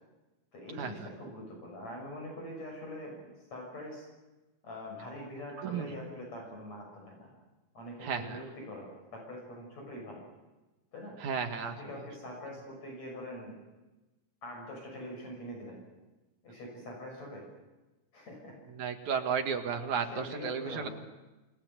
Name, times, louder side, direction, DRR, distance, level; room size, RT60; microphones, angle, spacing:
voice 1, 0.5-4.1 4.6-7.3 7.7-10.2 10.9-11.2 11.6-13.7 14.4-15.8 16.4-17.4 18.1-18.6 20.1-20.9, left 1 dB, 55° left, 0 dB, 7.6 m, -44 dB
voice 2, 5.6-5.9 8.0-8.4 11.2-11.8 18.7-20.9, right 6 dB, 65° right, 5 dB, 3.2 m, -33 dB
27.5 x 20.5 x 8.1 m, 1.1 s
omnidirectional pair, 3.7 m